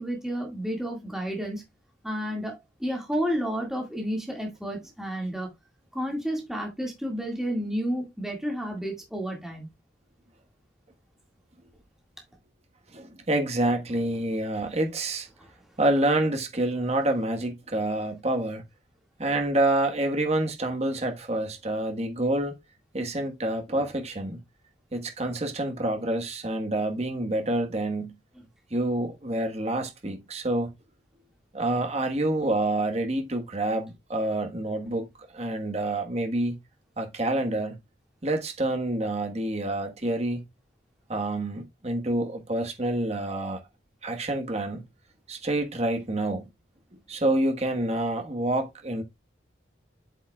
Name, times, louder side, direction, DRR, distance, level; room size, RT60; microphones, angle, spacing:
voice 1, 0.0-1.6 2.0-5.5 5.9-9.7 15.4-15.5, equal, 5° right, 2.0 m, -31 dB
voice 2, 12.9-15.3 15.8-18.6 19.2-22.6 22.9-24.4 24.9-28.2 28.7-30.7 31.5-35.1 35.3-36.6 37.0-37.8 38.2-40.4 41.1-43.6 44.0-44.8 45.3-46.5 47.1-49.0, right 1 dB, 35° right, 1.4 m, -27 dB
8.0 x 7.3 x 2.3 m
head